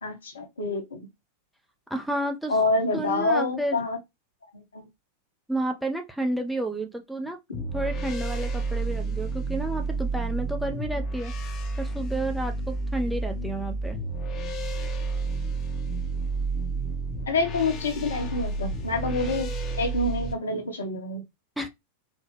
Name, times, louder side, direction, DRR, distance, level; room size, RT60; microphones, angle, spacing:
voice 1, 0.0-1.1 2.5-4.0 4.5-4.9 17.3-19.5 19.8-21.2, left 3 dB, 70° left, 1.1 m, -27 dB
voice 2, 1.9-2.5 2.9-3.8 5.5-11.3 11.8-14.0 21.6-21.7, right 1 dB, 5° right, 0.7 m, -31 dB
sound 1, 7.5-20.3, right 3 dB, 30° left, 0.9 m, -30 dB
4.1 x 2.3 x 3.3 m
figure-of-eight pair, 90°, 0 cm